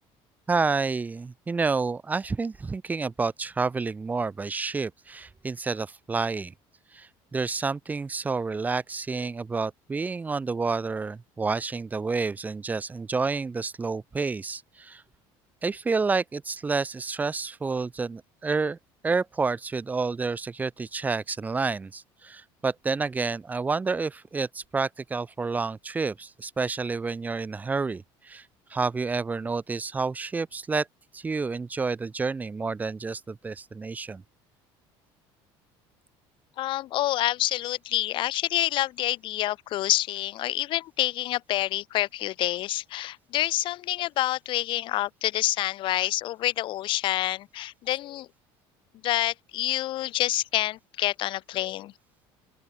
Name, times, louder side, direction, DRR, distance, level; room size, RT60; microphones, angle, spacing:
voice 1, 0.5-6.5 6.9-15.0 15.6-18.8 19.0-28.4 28.7-30.9 31.1-34.2, right 4 dB, 15° right, 4.4 m, -29 dB
voice 2, 36.6-48.3 49.0-51.9, left 15 dB, 50° left, 4.4 m, -27 dB
open air
cardioid pair, 160°, 11 cm